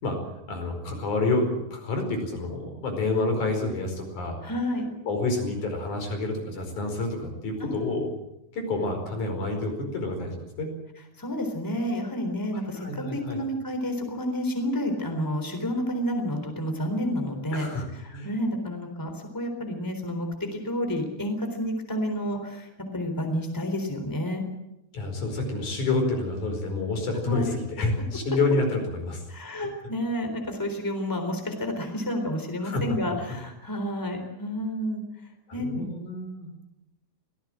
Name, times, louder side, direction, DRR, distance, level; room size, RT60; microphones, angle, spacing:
voice 1, 0.5-4.4 5.1-8.1 8.5-10.7 12.5-13.4 17.5-17.9 18.1-18.3 24.9-29.2 32.6-33.0 35.5-36.5, left 2 dB, 75° left, 4 dB, 6.3 m, -28 dB
voice 2, 4.4-4.9 7.6-8.0 11.2-17.7 18.0-24.4 27.2-27.6 29.3-35.0 35.5-35.8, equal, 5° left, 5 dB, 3.7 m, -30 dB
25.0 x 17.5 x 7.6 m, 0.90 s
omnidirectional pair, 3.5 m